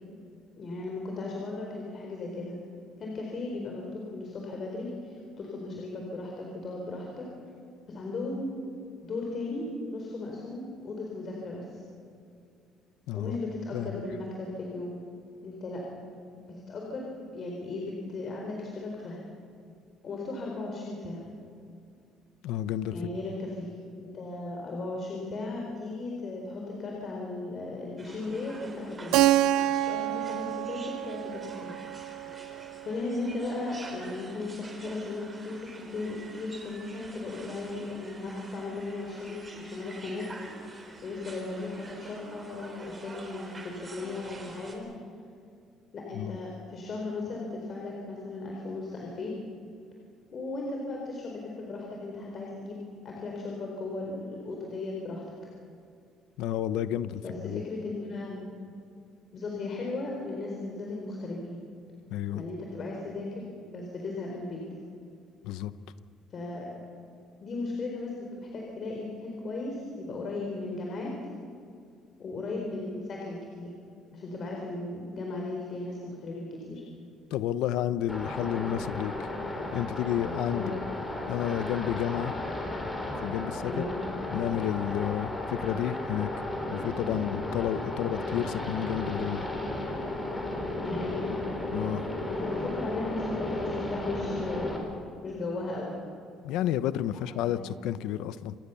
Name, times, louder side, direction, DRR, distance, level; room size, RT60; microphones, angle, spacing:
voice 1, 0.6-2.6 3.0-7.3 7.9-8.5 9.0-11.8 13.1-15.0 15.4-15.8 16.3-19.2 20.0-21.2 22.9-29.3 29.9-31.8 32.3-32.5 32.8-44.9 45.9-49.3 50.3-55.2 57.2-58.4 59.3-61.6 62.3-64.6 66.3-66.7 67.4-71.1 72.2-73.7 74.1-76.8 80.5-80.8 83.7-84.0 90.8-91.3 92.3-94.8 95.2-95.9 97.1-97.7, left 2 dB, 40° left, -1 dB, 4.2 m, -36 dB
voice 2, 13.1-13.4 13.7-14.0 22.4-23.0 46.1-46.4 56.4-57.6 62.1-62.4 65.4-65.7 77.3-79.3 79.7-80.7 81.3-82.3 83.2-83.8 84.3-86.3 86.7-89.5 91.7-92.0 96.4-98.6, left 11 dB, 85° left, 14 dB, 0.9 m, -31 dB
sound 1, 28.0-44.8, right 3 dB, 20° right, 4.0 m, -47 dB
Keyboard (musical), 29.1-33.7, right 14 dB, 85° right, 0.6 m, -28 dB
sound 2, 78.1-94.8, left 1 dB, 10° left, 4.9 m, -34 dB
27.0 x 19.5 x 7.1 m, 2.5 s
cardioid pair, 145°, 0 cm